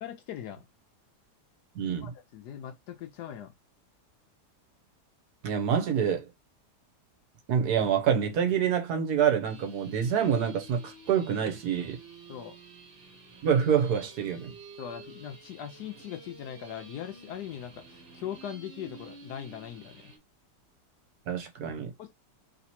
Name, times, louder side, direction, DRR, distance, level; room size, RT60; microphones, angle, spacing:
voice 1, 0.0-0.7 1.8-3.5 12.3-12.6 14.8-20.1 22.0-22.1, left 10 dB, 75° left, 1.1 m, -40 dB
voice 2, 1.7-2.1 5.4-6.3 7.5-12.0 13.4-14.5 21.3-21.9, right 8 dB, 70° right, 1.4 m, -26 dB
sound 1, 9.4-20.2, right 3 dB, 45° right, 1.4 m, -50 dB
3.3 x 3.0 x 4.1 m
omnidirectional pair, 1.8 m